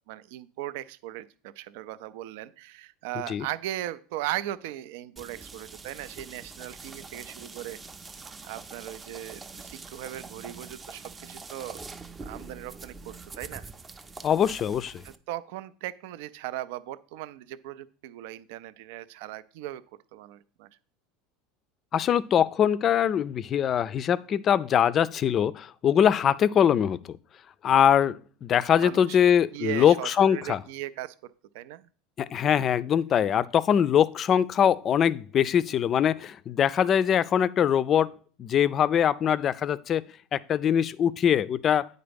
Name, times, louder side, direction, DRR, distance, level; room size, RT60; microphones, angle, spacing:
voice 1, 0.1-7.8 8.4-13.7 15.0-19.8 20.1-20.7 28.8-29.2 29.5-31.9, right 14 dB, 75° right, 16 dB, 0.4 m, -38 dB
sound 1, 5.2-15.2, right 4 dB, 20° right, 0.5 m, -44 dB
voice 2, 14.2-15.0 21.9-27.2 27.6-30.6 32.2-38.1 38.4-40.0 40.3-41.9, left 9 dB, 35° left, 18 dB, 0.4 m, -23 dB
8.8 x 4.0 x 5.2 m, 0.42 s
supercardioid pair, 120°, 0 cm